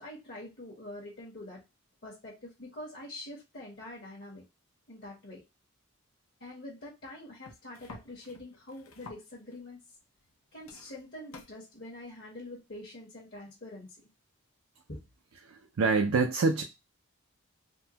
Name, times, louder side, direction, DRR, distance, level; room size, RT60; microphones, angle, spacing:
voice 1, 0.0-1.6 2.0-4.4 4.9-5.4 6.4-9.8 10.5-14.1 14.9-15.0, left 1 dB, 45° left, -3 dB, 1.0 m, -45 dB
sound 1, 7.4-9.7 10.1-10.3 10.6-11.5 12.6-12.7, left 3 dB, 70° left, 0.7 m, -51 dB
voice 2, 15.4-16.6, right 4 dB, 75° right, 4 dB, 0.5 m, -26 dB
3.6 x 2.2 x 2.8 m, 0.25 s
head